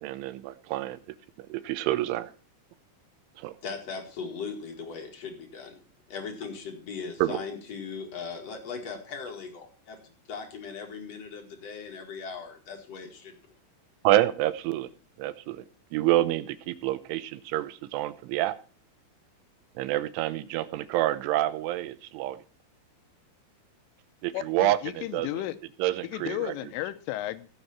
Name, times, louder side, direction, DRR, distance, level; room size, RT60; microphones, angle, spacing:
voice 1, 0.0-1.0 1.5-2.3 3.4-3.5 7.2-7.4 14.0-14.9 15.2-15.6 15.9-18.5 19.8-22.4 24.2-25.3 25.8-26.5, right 15 dB, 85° right, 13 dB, 3.2 m, -27 dB
voice 2, 3.6-5.8 6.1-13.4, left 5 dB, 50° left, 4 dB, 2.0 m, -39 dB
voice 3, 24.3-25.6 26.0-27.5, left 14 dB, 90° left, 11 dB, 3.4 m, -34 dB
16.5 x 7.9 x 4.2 m, 0.38 s
omnidirectional pair, 5.6 m